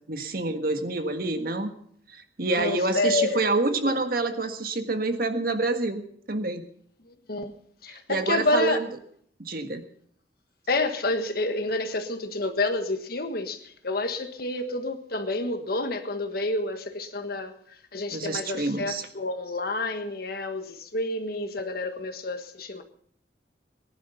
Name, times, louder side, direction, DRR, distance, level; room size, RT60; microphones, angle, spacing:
voice 1, 0.1-1.7 2.1-6.0 6.3-6.6 7.9-8.9 9.4-9.8 18.1-19.1, right 2 dB, 55° right, 1.6 m, -27 dB
voice 2, 2.6-3.4 3.7-4.0 7.1-7.5 7.8-8.8 10.7-17.5 17.9-22.8, left 2 dB, 55° left, 1.5 m, -29 dB
19.0 x 11.0 x 5.6 m
head